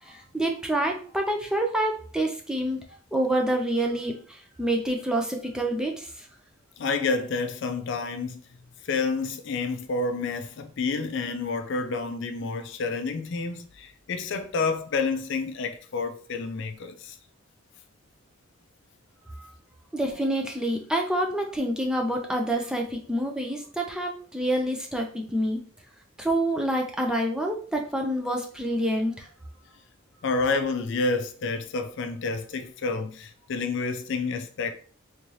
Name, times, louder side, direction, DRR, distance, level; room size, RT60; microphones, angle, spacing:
voice 1, 0.0-2.8 3.1-6.3 19.4-19.5 19.9-25.6 26.2-29.3, right 1 dB, 5° right, 0.4 m, -27 dB
voice 2, 6.8-8.4 8.8-17.2 30.2-34.7, left 4 dB, 60° left, 0.4 m, -29 dB
3.6 x 2.7 x 3.1 m
head